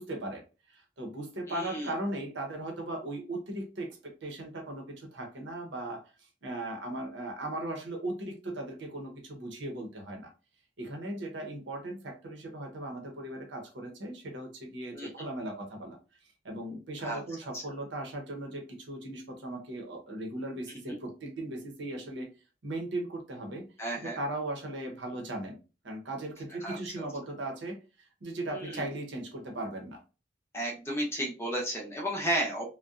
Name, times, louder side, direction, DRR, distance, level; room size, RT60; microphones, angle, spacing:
voice 1, 0.0-6.1 6.4-10.3 10.8-16.0 16.4-22.3 22.6-23.7 23.9-25.6 25.8-27.8 28.2-30.0, right 1 dB, 70° right, 2 dB, 0.8 m, -38 dB
voice 2, 1.5-1.9 14.9-15.3 17.0-17.2 20.9-21.0 23.8-24.2 26.6-26.8 28.5-28.8 30.5-32.7, right 1 dB, 15° left, -2 dB, 0.6 m, -33 dB
2.6 x 2.1 x 2.3 m, 0.31 s
head